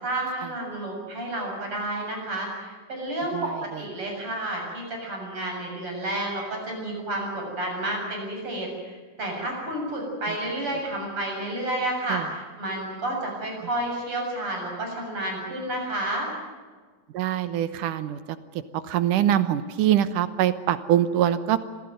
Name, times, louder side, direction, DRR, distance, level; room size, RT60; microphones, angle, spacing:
voice 1, 0.0-16.3, right 1 dB, 40° right, 0 dB, 8.1 m, -30 dB
voice 2, 3.3-3.8 12.1-12.2 17.1-18.2 18.5-21.6, right 11 dB, 75° right, 13 dB, 2.4 m, -24 dB
26.0 x 16.5 x 9.3 m, 1.5 s
omnidirectional pair, 3.9 m